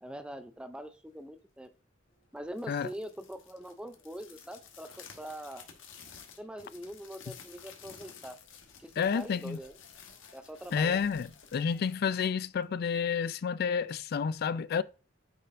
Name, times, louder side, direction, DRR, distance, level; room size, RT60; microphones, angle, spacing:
voice 1, 0.0-1.7 2.3-5.7 6.4-8.4 8.8-9.8 10.3-11.0, right 1 dB, 5° right, 0.5 m, -43 dB
sound 1, 2.4-12.8, left 6 dB, 85° left, 1.2 m, -53 dB
voice 2, 9.0-9.6 10.7-14.8, left 6 dB, 55° left, 0.4 m, -30 dB
9.0 x 4.3 x 2.6 m
head